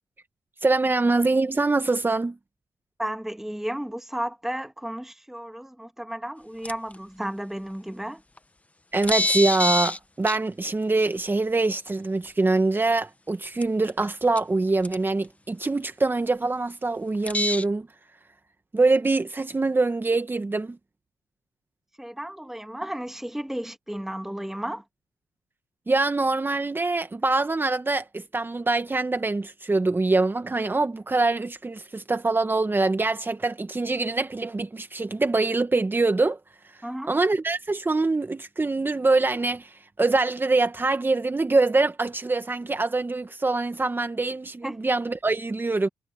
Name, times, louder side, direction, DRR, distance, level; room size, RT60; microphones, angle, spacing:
voice 1, 0.6-2.4 8.9-17.9 18.7-20.8 25.9-36.4 37.1-45.9, right 3 dB, 25° right, 1.7 m, -24 dB
voice 2, 3.0-8.2 22.0-24.8 36.8-37.1 44.6-44.8, right 1 dB, 5° right, 1.7 m, -33 dB
sound 1, 6.6-7.0 8.4-8.5 9.0-10.0 10.3-10.4 12.3-12.4 13.6-14.0 14.4-14.5 14.8-15.0 17.3-17.6, left 1 dB, 15° left, 1.1 m, -25 dB
supercardioid pair, 60°, 8 cm